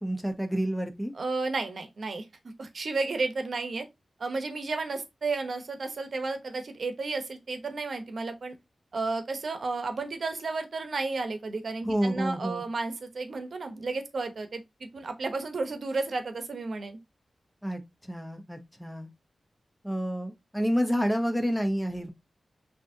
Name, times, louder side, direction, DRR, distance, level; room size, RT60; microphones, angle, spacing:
voice 1, 0.0-1.1 11.8-12.6 17.6-19.1 19.8-22.1, equal, 5° left, 0.8 m, -29 dB
voice 2, 1.1-2.3 2.6-3.9 4.2-8.5 8.9-17.0, right 3 dB, 60° right, 0.9 m, -32 dB
6.0 x 2.8 x 2.7 m
wide cardioid pair, 130°, 0 cm